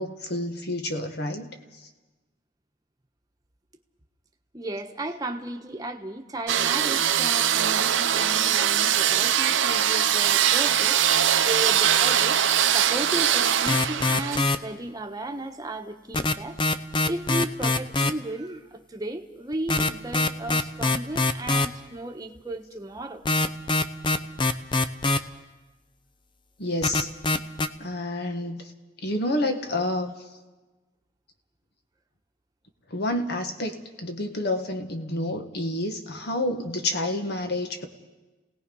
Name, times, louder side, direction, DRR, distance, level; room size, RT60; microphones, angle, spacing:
voice 1, 0.0-1.5 26.6-27.1 27.8-28.7 29.0-30.1 32.9-37.9, left 1 dB, 60° left, 6 dB, 1.7 m, -29 dB
voice 2, 4.5-12.4 12.7-16.6 17.1-23.2, right 1 dB, 20° right, 3 dB, 1.2 m, -35 dB
sound 1, 6.5-14.4, right 9 dB, 80° right, 0.8 m, -22 dB
sound 2, 13.7-14.6 16.1-18.1 19.5-21.7 23.3-25.2 26.8-27.7, left 2 dB, 25° left, 0.7 m, -23 dB
28.0 x 18.0 x 5.5 m, 1.2 s
head